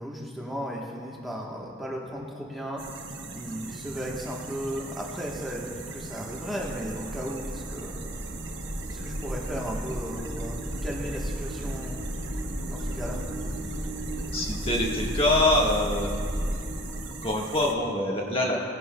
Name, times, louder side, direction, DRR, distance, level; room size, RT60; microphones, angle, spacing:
voice 1, 0.0-2.8 3.3-7.9 8.9-12.0 12.7-13.2, equal, ahead, -4 dB, 1.1 m, -35 dB
sound 1, 2.8-17.7, right 3 dB, 65° right, 0.8 m, -41 dB
sound 2, 5.5-17.1, equal, 85° right, 1.2 m, -34 dB
voice 2, 14.3-16.1 17.1-18.6, left 1 dB, 30° left, -2 dB, 1.3 m, -25 dB
16.5 x 11.0 x 2.2 m, 2.3 s
head